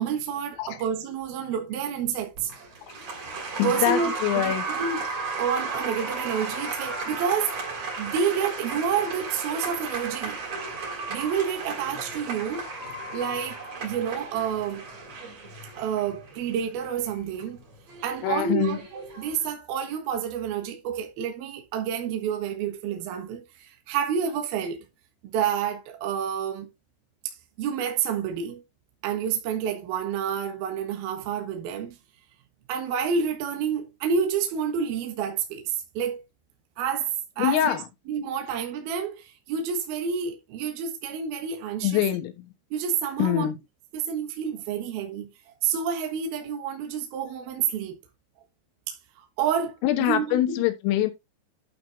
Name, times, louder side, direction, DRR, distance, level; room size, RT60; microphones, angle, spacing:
voice 1, 0.0-2.5 3.6-5.1 5.4-7.5 8.0-10.4 11.1-12.7 13.1-14.8 15.7-17.6 18.0-24.8 25.2-26.7 27.2-28.6 29.0-32.0 32.7-36.2 36.8-37.1 37.4-37.8 38.1-42.0 42.7-43.5 43.9-45.3 45.6-48.0 48.9-50.6, right 7 dB, 65° right, 2.6 m, -29 dB
Applause, 2.4-19.5, right 3 dB, 35° right, 3.5 m, -35 dB
voice 2, 3.6-4.7 18.2-18.8 37.4-37.8 41.8-42.5 43.2-43.6 49.8-51.1, left 13 dB, 80° left, 3.9 m, -24 dB
12.0 x 4.2 x 4.3 m
omnidirectional pair, 5.9 m